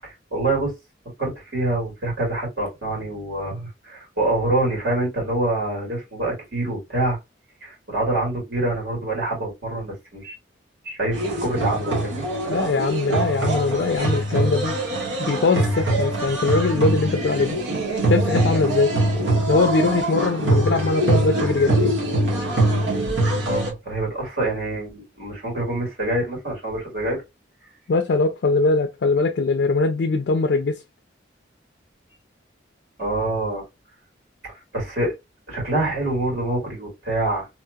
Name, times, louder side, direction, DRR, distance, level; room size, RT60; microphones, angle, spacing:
voice 1, 0.0-0.7 1.2-7.2 7.6-10.3 10.8-12.3 23.5-27.2 33.0-33.7 34.4-35.1 35.5-37.5, right 2 dB, 55° right, 1.8 m, -26 dB
sound 1, 11.1-23.7, right 2 dB, 85° right, 1.2 m, -23 dB
voice 2, 12.5-14.8 15.2-17.6 18.1-18.9 19.5-22.0 27.9-30.8, left 3 dB, 60° left, 0.4 m, -21 dB
3.0 x 2.8 x 2.2 m
head